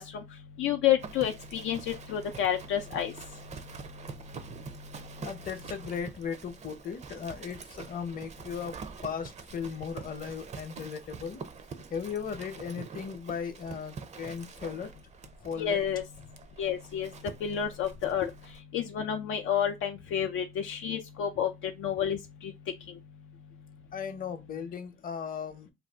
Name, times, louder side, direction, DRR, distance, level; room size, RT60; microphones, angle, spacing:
voice 1, 0.0-3.4 15.6-16.0 16.6-18.3 18.7-23.0, left 9 dB, 85° left, 0.4 m, -30 dB
Livestock farm animals working animals, 1.0-18.6, right 5 dB, 35° right, 0.5 m, -46 dB
voice 2, 5.2-8.8 9.0-11.4 11.9-14.9 15.4-15.8 18.0-18.3 21.3-21.4 23.9-25.7, left 6 dB, 45° left, 0.7 m, -37 dB
2.6 x 2.2 x 3.4 m
cardioid pair, 90°, 20 cm